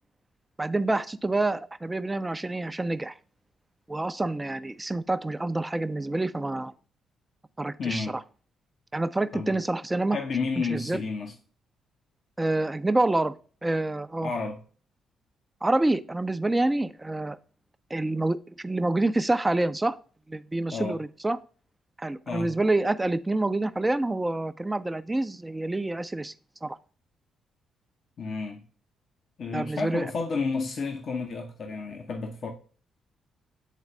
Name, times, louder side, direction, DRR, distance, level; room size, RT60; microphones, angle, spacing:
voice 1, 0.6-3.1 3.9-6.7 7.6-8.1 8.9-10.2 10.6-11.0 12.4-13.3 13.6-14.3 15.6-17.4 17.9-20.0 20.3-21.4 22.0-26.3 26.6-26.8 29.5-30.1, right 2 dB, 20° right, 0.5 m, -27 dB
voice 2, 7.8-8.2 9.3-9.5 10.1-11.3 14.2-14.6 20.7-21.0 22.3-22.5 28.2-28.7 29.4-32.5, left 4 dB, 55° left, 0.8 m, -31 dB
8.3 x 4.0 x 3.3 m
hypercardioid pair, 40°, 0 cm